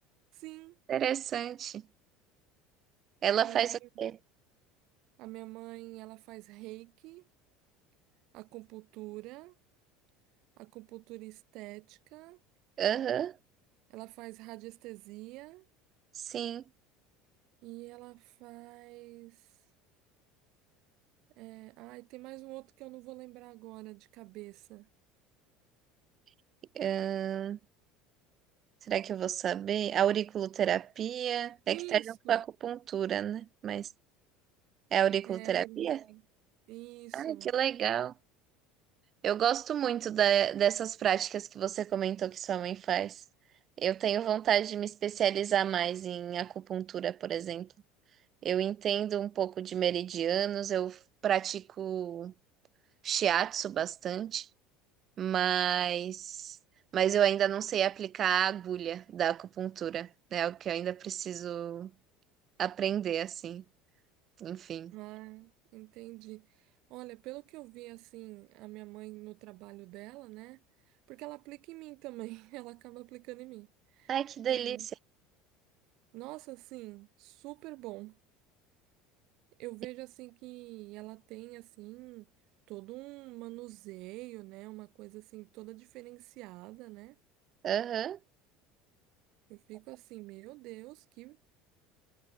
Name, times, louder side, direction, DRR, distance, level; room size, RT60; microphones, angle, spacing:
voice 1, 0.3-0.8 3.4-3.9 5.2-7.3 8.3-9.5 10.6-12.4 13.9-15.7 17.6-19.5 21.4-24.9 31.7-32.4 35.2-36.2 36.7-37.5 64.9-70.6 71.1-74.2 74.4-74.9 76.1-78.2 79.6-82.3 82.7-87.1 89.5-91.4, right 21 dB, 60° right, 3.3 m, -46 dB
voice 2, 0.9-1.8 3.2-4.2 12.8-13.3 16.2-16.6 26.8-27.6 28.9-32.0 32.3-33.9 34.9-36.0 37.1-38.1 39.2-43.2 43.8-47.7 48.4-52.3 53.0-54.5 55.2-56.6 56.9-61.9 62.6-63.6 64.4-64.9 74.1-74.9 87.6-88.2, right 10 dB, 40° right, 0.6 m, -30 dB
supercardioid pair, 125°, 0 cm